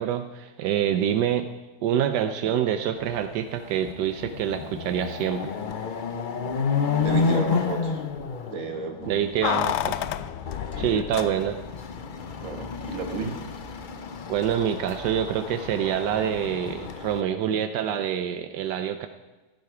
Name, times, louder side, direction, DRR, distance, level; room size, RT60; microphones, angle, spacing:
voice 1, 0.0-1.5 1.8-5.5 9.1-10.0 10.8-11.6 14.3-19.1, right 9 dB, 85° right, 8 dB, 1.3 m, -26 dB
Chatter / Car passing by / Motorcycle, 3.2-3.3 3.7-17.2, left 5 dB, 55° left, 0.5 m, -31 dB
voice 2, 7.0-8.0 8.4-9.2 10.7-10.9 12.4-13.3, right 4 dB, 50° right, 4 dB, 1.9 m, -33 dB
Keys jangling, 9.4-11.8 12.0-12.1, left 12 dB, 80° left, 1.2 m, -29 dB
14.5 x 12.0 x 4.8 m, 1.2 s
omnidirectional pair, 1.8 m